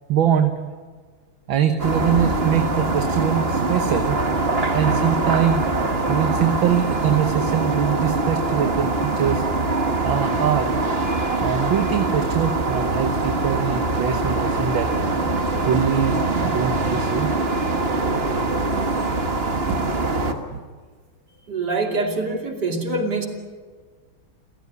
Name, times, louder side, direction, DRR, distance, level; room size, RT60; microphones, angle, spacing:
voice 1, 0.1-0.5 1.5-4.2 4.7-5.7 6.1-9.4 10.0-10.7 11.4-15.0 15.6-17.3 19.7-19.8 20.5-20.6, right 9 dB, 65° right, 7 dB, 1.8 m, -23 dB
sound 1, 1.8-20.3, right 2 dB, 30° right, 1.6 m, -23 dB
voice 2, 21.5-23.3, right 3 dB, 50° right, 3 dB, 3.3 m, -24 dB
29.0 x 15.5 x 9.5 m, 1.5 s
omnidirectional pair, 2.4 m